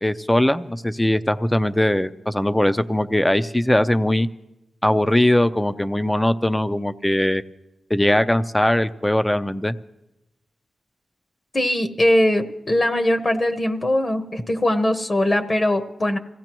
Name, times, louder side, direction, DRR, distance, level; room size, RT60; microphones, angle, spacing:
voice 1, 0.0-4.3 4.8-7.4 7.9-9.7, left 1 dB, 10° left, 11 dB, 0.6 m, -20 dB
voice 2, 11.5-16.2, left 1 dB, 35° left, 6 dB, 1.0 m, -21 dB
25.5 x 16.5 x 3.0 m, 0.92 s
cardioid pair, 80°, 0 cm